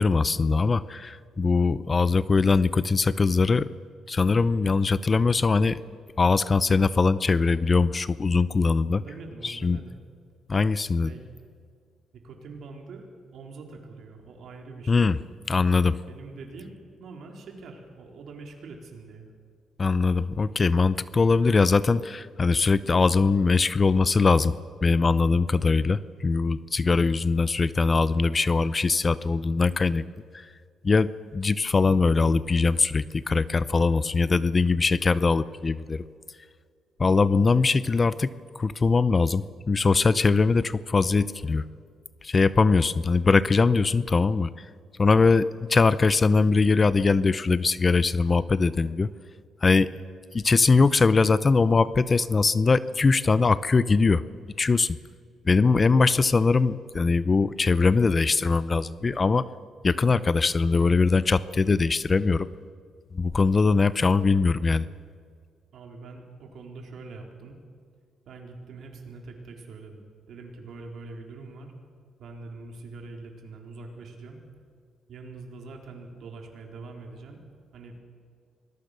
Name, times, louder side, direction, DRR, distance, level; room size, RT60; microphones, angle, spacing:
voice 1, 0.0-3.7 4.1-5.8 6.2-9.0 9.4-9.8 10.5-11.1 14.9-15.2 15.5-16.0 19.8-24.5 24.8-30.0 30.8-36.0 37.0-38.3 38.6-41.6 42.2-44.5 45.0-49.1 49.6-49.9 50.3-54.2 54.6-55.0 55.5-59.5 59.8-62.5 63.1-64.9, left 4 dB, 30° left, 17 dB, 0.6 m, -21 dB
voice 2, 8.9-10.0 11.0-11.3 12.1-13.1 13.3-15.1 16.1-19.3 65.7-67.6 68.3-71.7 72.2-74.4 75.1-77.4 77.7-77.9, right 3 dB, 65° right, 2 dB, 4.3 m, -43 dB
26.0 x 20.5 x 6.8 m, 2.1 s
cardioid pair, 90°, 0 cm